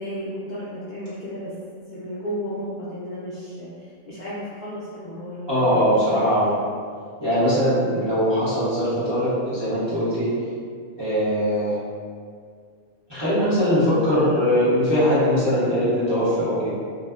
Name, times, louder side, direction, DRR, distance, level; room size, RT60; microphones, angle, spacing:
voice 1, 0.0-1.5 1.9-6.1 7.8-8.0, equal, 90° left, -10 dB, 0.4 m, -33 dB
voice 2, 5.5-6.6 7.2-10.3 11.0-11.8 13.1-16.7, equal, 25° right, -14 dB, 0.8 m, -21 dB
2.7 x 2.1 x 2.2 m, 2.1 s
omnidirectional pair, 1.4 m